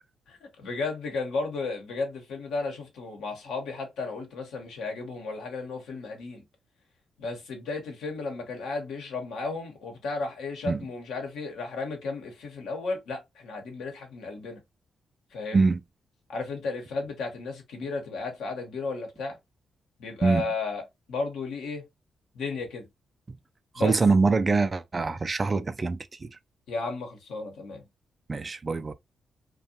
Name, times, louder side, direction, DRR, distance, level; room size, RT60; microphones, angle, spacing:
voice 1, 0.3-6.4 7.2-14.6 15.3-15.7 16.3-19.4 20.0-20.8 21.1-21.9 22.3-22.9 23.7-24.0 26.7-27.8, left 3 dB, 80° left, 1.0 m, -34 dB
voice 2, 23.8-26.3 28.3-28.9, right 4 dB, 40° right, 0.4 m, -24 dB
2.5 x 2.2 x 2.7 m
supercardioid pair, 45°, 0 cm